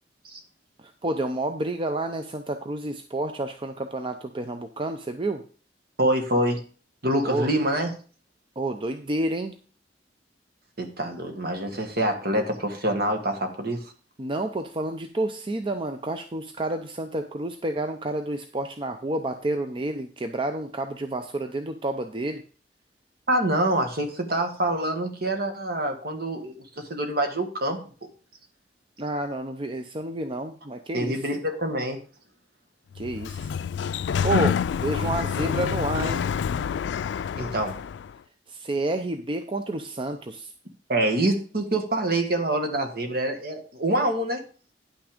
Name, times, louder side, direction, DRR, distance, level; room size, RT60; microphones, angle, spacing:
voice 1, 0.8-5.4 7.3-7.5 8.6-9.5 14.2-22.4 29.0-31.2 32.9-33.5 34.2-36.3 38.5-40.5, right 2 dB, 30° right, 6 dB, 0.6 m, -29 dB
voice 2, 6.0-6.6 7.0-7.9 10.8-13.8 23.3-26.5 26.9-27.8 30.9-32.0 37.4-37.8 40.9-44.4, right 1 dB, 60° right, 5 dB, 1.8 m, -25 dB
Sliding door, 33.0-38.1, left 7 dB, 85° left, 0.3 m, -27 dB
10.0 x 6.1 x 5.1 m, 0.40 s
head